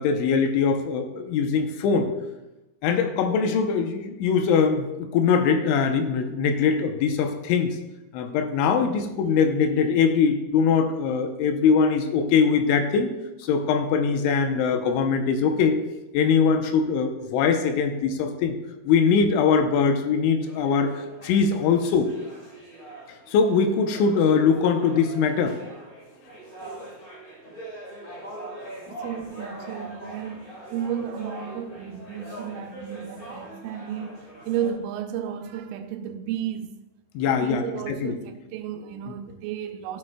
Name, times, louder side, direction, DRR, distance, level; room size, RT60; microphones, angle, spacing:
voice 1, 0.0-2.1 2.8-7.8 8.1-13.1 13.4-15.8 16.1-18.6 18.9-22.1 23.3-25.6 37.2-38.1, left 6 dB, 80° left, 3.0 m, -22 dB
sound 1, 20.4-34.7, right 1 dB, 30° left, 1.8 m, -42 dB
voice 2, 28.9-36.7 37.3-40.0, right 9 dB, 90° right, 3.2 m, -33 dB
15.0 x 7.2 x 2.2 m
omnidirectional pair, 5.6 m